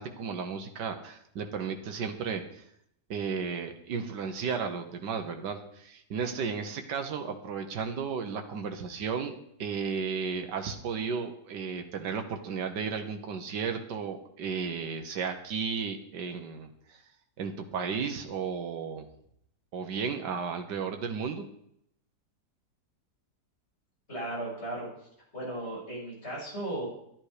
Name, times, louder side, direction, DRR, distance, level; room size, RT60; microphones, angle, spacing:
voice 1, 0.0-2.6 3.1-17.0 17.4-19.1 19.7-21.4, right 6 dB, 90° right, 5 dB, 1.8 m, -34 dB
voice 2, 24.1-25.1 25.3-26.9, right 1 dB, 40° left, -5 dB, 6.8 m, -36 dB
12.0 x 11.0 x 5.0 m, 0.73 s
omnidirectional pair, 1.8 m